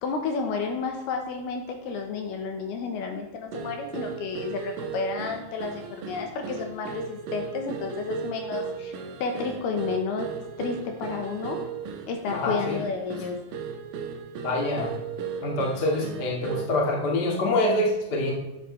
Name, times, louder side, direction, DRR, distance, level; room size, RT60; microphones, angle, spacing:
voice 1, 0.0-8.9 9.2-11.6 12.1-13.4, left 5 dB, 75° left, 4 dB, 2.7 m, -31 dB
sound 1, 3.5-16.8, right 6 dB, 75° right, 2.0 m, -36 dB
voice 2, 12.3-12.8 14.4-14.9 15.4-18.3, left 1 dB, 50° left, -1 dB, 1.1 m, -25 dB
11.5 x 8.3 x 3.2 m, 1.0 s
omnidirectional pair, 5.1 m